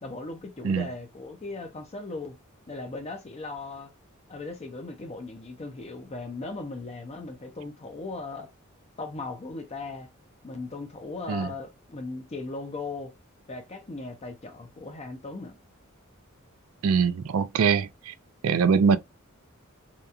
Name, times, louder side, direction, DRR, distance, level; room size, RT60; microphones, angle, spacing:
voice 1, 0.0-2.4 2.7-3.9 4.3-8.5 9.0-10.1 10.4-13.1 13.5-15.6, left 3 dB, 30° left, 0.5 m, -38 dB
voice 2, 16.8-18.1 18.4-19.0, right 6 dB, 75° right, 0.4 m, -23 dB
2.9 x 2.3 x 2.3 m
head